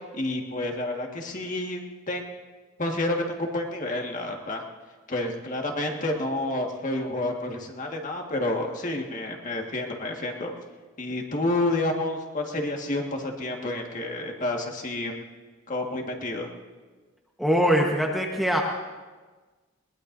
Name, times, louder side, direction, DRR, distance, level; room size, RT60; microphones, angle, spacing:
voice 1, 0.1-1.8 2.1-2.3 2.8-4.6 5.1-10.5 11.0-15.1 15.7-16.5, left 2 dB, 40° left, 1 dB, 1.7 m, -29 dB
voice 2, 17.4-18.6, equal, ahead, -1 dB, 1.2 m, -22 dB
21.5 x 20.0 x 2.7 m, 1.3 s
head